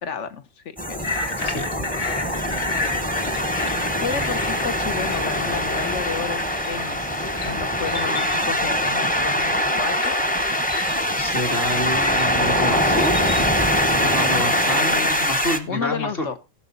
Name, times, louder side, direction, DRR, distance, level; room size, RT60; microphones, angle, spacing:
voice 1, 0.0-1.2 4.0-10.2 14.7-15.2 15.7-16.4, left 6 dB, 65° left, 10 dB, 1.2 m, -32 dB
sound 1, 0.8-15.6, equal, 10° left, 0.7 m, -23 dB
sound 2, 1.0-13.4, left 3 dB, 80° left, 2.3 m, -33 dB
voice 2, 11.2-13.2 13.9-16.3, left 1 dB, 45° left, 1 dB, 2.2 m, -28 dB
17.0 x 6.6 x 3.9 m, 0.28 s
omnidirectional pair, 1.4 m